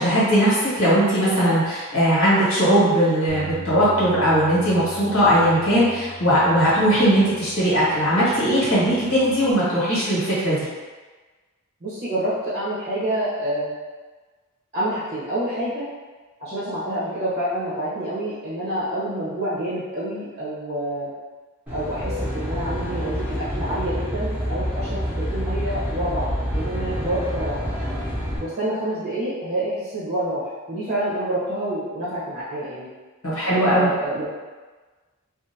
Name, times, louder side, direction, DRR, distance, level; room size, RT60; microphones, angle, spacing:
voice 1, 0.0-10.6 33.2-33.9, equal, 80° left, -9 dB, 1.4 m, -19 dB
Bass guitar, 3.3-9.5, right 3 dB, 60° right, 0.5 m, -41 dB
voice 2, 11.8-13.8 14.7-15.9 16.4-21.1 21.7-27.6 28.4-32.9 33.4-34.3, right 1 dB, 35° right, -11 dB, 0.9 m, -27 dB
Aircraft, 21.7-28.4, equal, 5° right, 1.0 m, -27 dB
2.6 x 2.5 x 2.7 m, 1.3 s
head